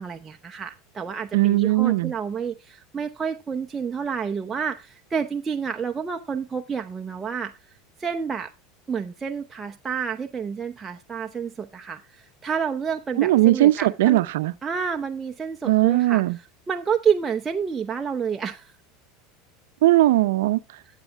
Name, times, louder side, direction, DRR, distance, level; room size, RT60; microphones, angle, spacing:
voice 1, 0.0-7.5 8.0-8.5 8.9-14.2 14.6-16.2 16.7-18.7, right 6 dB, 20° right, 0.7 m, -29 dB
voice 2, 1.3-2.1 13.2-14.5 15.6-16.4 19.8-20.6, right 16 dB, 80° right, 0.6 m, -19 dB
12.0 x 8.2 x 3.5 m
supercardioid pair, 115°, 0 cm